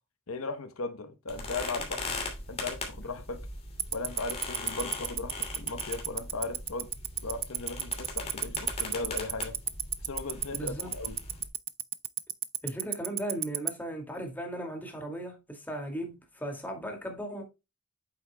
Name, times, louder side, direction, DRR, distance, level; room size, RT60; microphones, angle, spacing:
voice 1, 0.3-2.1 2.5-3.5 3.9-6.9 7.2-9.6 10.0-11.2, left 3 dB, 70° left, 1.0 m, -37 dB
sound 1, 1.3-11.5, left 2 dB, 30° left, 2.8 m, -40 dB
Tick-tock, 3.8-13.7, right 11 dB, 30° right, 0.5 m, -28 dB
voice 2, 10.5-10.9 12.6-17.4, right 1 dB, 10° left, 2.3 m, -37 dB
8.7 x 7.3 x 2.2 m
head